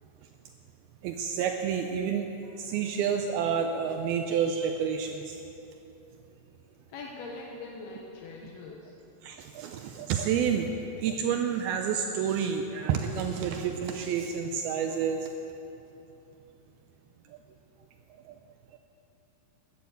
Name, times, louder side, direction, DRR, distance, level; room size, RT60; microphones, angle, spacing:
voice 1, 1.0-2.3 2.6-5.4 9.2-10.7 11.0-15.2 18.3-18.4, right 7 dB, 80° right, 4 dB, 2.4 m, -29 dB
voice 2, 6.9-9.0, left 3 dB, 75° left, -1 dB, 2.9 m, -42 dB
13.5 x 9.3 x 8.1 m, 2.9 s
omnidirectional pair, 4.7 m